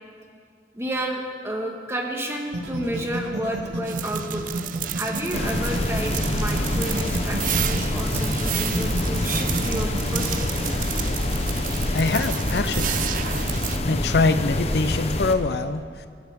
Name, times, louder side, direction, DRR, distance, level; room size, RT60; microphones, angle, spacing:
voice 1, 0.7-4.4 4.9-10.7 11.7-11.8, right 1 dB, 15° right, 1 dB, 1.6 m, -31 dB
sound 1, 2.5-10.4, right 1 dB, 80° right, 1.9 m, -31 dB
sound 2, 3.9-13.8, right 12 dB, 50° right, 0.4 m, -32 dB
sound 3, 5.3-15.3, left 1 dB, 35° left, 0.8 m, -26 dB
voice 2, 11.9-12.9 13.9-16.1, left 3 dB, 65° left, 10 dB, 0.6 m, -24 dB
23.5 x 11.5 x 3.6 m, 2.3 s
head